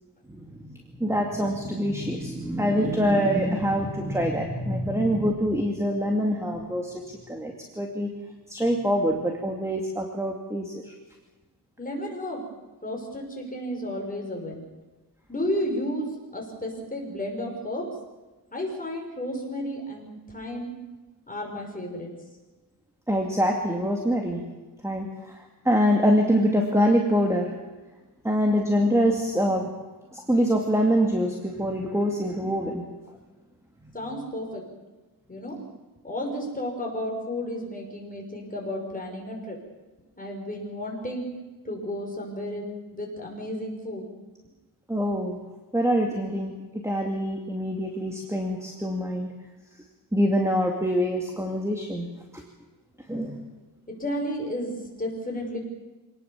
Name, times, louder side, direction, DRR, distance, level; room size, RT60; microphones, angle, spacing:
voice 1, 0.3-7.0 7.3-8.1 8.5-10.9 23.1-24.4 24.8-27.5 28.2-29.7 30.1-32.9 33.8-34.0 44.9-45.4 45.7-49.3 50.1-52.1 52.3-52.4 53.1-53.4, equal, 5° right, 2 dB, 2.3 m, -25 dB
voice 2, 11.8-12.4 12.8-14.6 15.3-17.9 18.5-20.7 21.3-22.1 33.9-34.6 35.3-35.6 36.0-39.6 40.2-41.3 41.6-42.6 42.9-44.0 53.9-54.7 55.0-55.6, equal, 20° left, 0 dB, 5.9 m, -32 dB
25.5 x 19.0 x 7.3 m, 1.2 s
wide cardioid pair, 130°, 41 cm